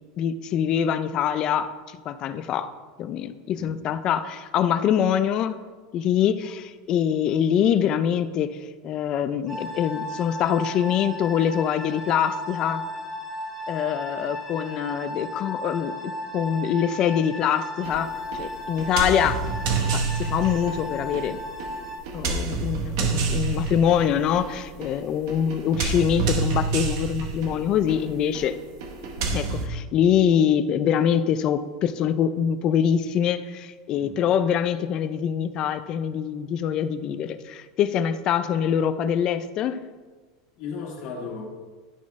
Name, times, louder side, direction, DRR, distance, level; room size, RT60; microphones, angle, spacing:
voice 1, 0.2-2.7 3.0-5.6 5.9-8.6 8.8-12.8 13.7-15.9 16.3-19.4 19.9-21.4 22.1-28.6 29.3-39.8, left 9 dB, 30° left, 12 dB, 0.3 m, -24 dB
voice 2, 3.5-3.9 33.9-34.2 40.6-41.5, left 4 dB, 50° left, -3 dB, 2.0 m, -36 dB
sound 1, 9.5-22.0, left 1 dB, 5° right, 1.6 m, -35 dB
sound 2, 17.8-29.7, right 4 dB, 55° right, 0.9 m, -29 dB
11.5 x 4.1 x 3.6 m, 1.4 s
supercardioid pair, 175°, 3 cm